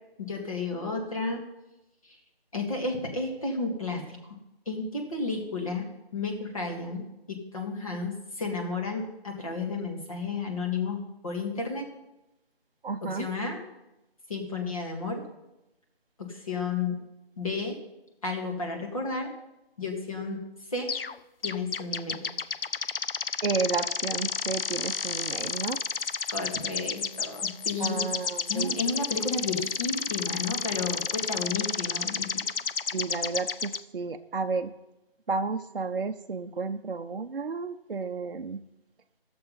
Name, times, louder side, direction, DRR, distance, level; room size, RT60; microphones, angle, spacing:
voice 1, 0.2-1.4 2.5-4.0 4.7-5.9 6.1-11.9 13.0-13.6 14.3-15.2 16.2-17.0 17.4-17.8 18.2-19.4 19.8-20.4 20.7-21.0 21.4-22.3 26.3-28.1 28.5-32.4, left 3 dB, 35° left, 1 dB, 1.8 m, -32 dB
voice 2, 12.8-13.3 23.4-25.8 27.8-28.8 32.9-34.7 35.3-38.6, right 4 dB, 60° right, 5 dB, 0.6 m, -32 dB
sound 1, 20.9-21.1 21.4-33.8, left 5 dB, 65° left, 0.5 m, -31 dB
12.5 x 6.9 x 5.5 m, 0.93 s
figure-of-eight pair, 165°, 31 cm